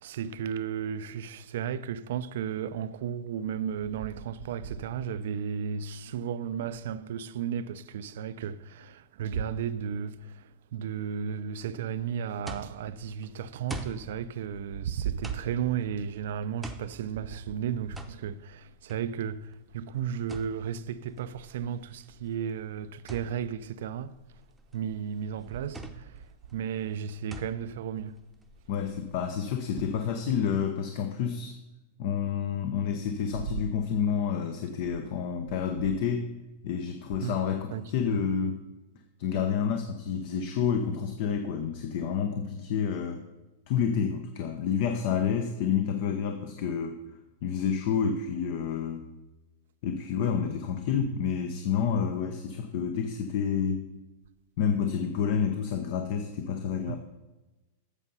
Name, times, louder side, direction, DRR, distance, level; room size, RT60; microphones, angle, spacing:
voice 1, 0.0-24.2 24.7-26.2 26.5-28.2 37.2-37.4 37.7-38.2 56.9-57.0, right 8 dB, 70° right, 0.5 m, -34 dB
sound 1, 11.9-29.2, right 2 dB, 5° right, 0.8 m, -46 dB
voice 2, 28.7-31.5 32.0-36.3 36.6-38.7 39.2-43.2 43.7-47.0 47.4-49.0 49.8-53.9 54.6-57.0, left 7 dB, 55° left, 0.8 m, -29 dB
8.2 x 6.7 x 5.5 m
hypercardioid pair, 130°, 0 cm